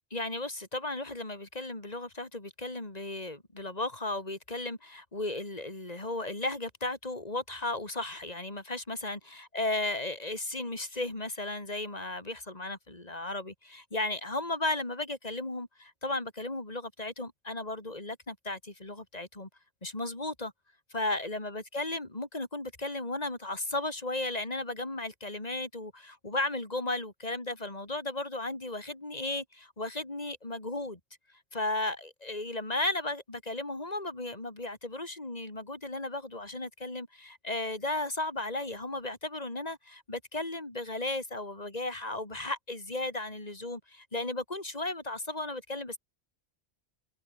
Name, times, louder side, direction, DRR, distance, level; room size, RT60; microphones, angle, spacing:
voice 1, 0.1-19.5 19.8-20.5 20.9-31.0 31.5-46.0, left 2 dB, 40° left, 3.8 m, -35 dB
omnidirectional pair, 1.1 m